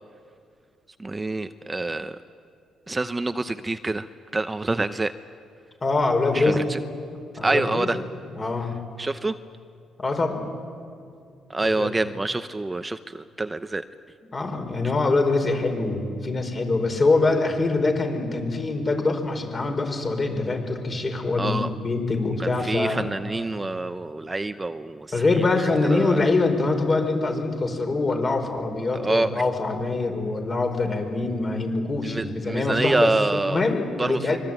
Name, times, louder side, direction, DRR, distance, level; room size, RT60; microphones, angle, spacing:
voice 1, 1.0-2.2 2.9-4.1 4.3-5.1 6.3-6.8 7.4-8.0 9.0-9.4 11.5-13.8 21.4-21.7 22.4-26.2 28.9-29.3 32.0-33.6 34.0-34.4, right 2 dB, 20° right, 10 dB, 0.8 m, -26 dB
voice 2, 5.8-6.6 7.4-7.9 8.4-8.7 10.0-10.4 11.6-11.9 14.3-23.1 25.1-34.4, left 3 dB, 35° left, 5 dB, 5.1 m, -24 dB
24.5 x 23.5 x 9.2 m, 2.4 s
cardioid pair, 90°, 0 cm